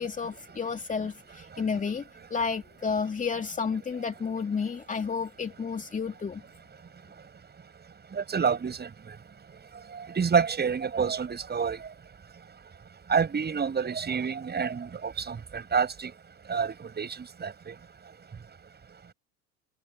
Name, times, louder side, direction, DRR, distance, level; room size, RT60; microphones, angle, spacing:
voice 1, 0.0-2.0 2.3-6.4, left 5 dB, 15° left, 2.6 m, -31 dB
voice 2, 8.1-9.2 9.9-11.9 13.1-16.1 16.5-17.8, right 6 dB, 20° right, 7.6 m, -28 dB
figure-of-eight pair, 80°, 45 cm